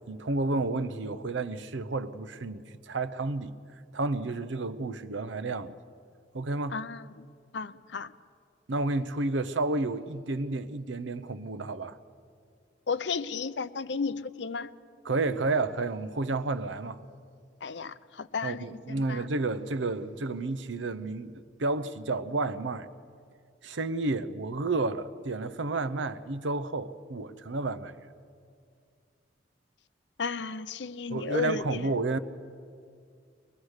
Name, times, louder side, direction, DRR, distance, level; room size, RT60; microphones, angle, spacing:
voice 1, 0.0-3.5 3.9-5.7 6.3-6.8 8.7-12.0 15.0-17.0 18.4-22.9 23.6-28.1 31.1-32.2, right 3 dB, 85° right, 0.8 m, -31 dB
voice 2, 6.7-7.3 7.5-8.1 12.9-14.7 17.6-19.2 30.2-31.9, left 5 dB, 70° left, 0.6 m, -34 dB
22.0 x 21.0 x 6.5 m
head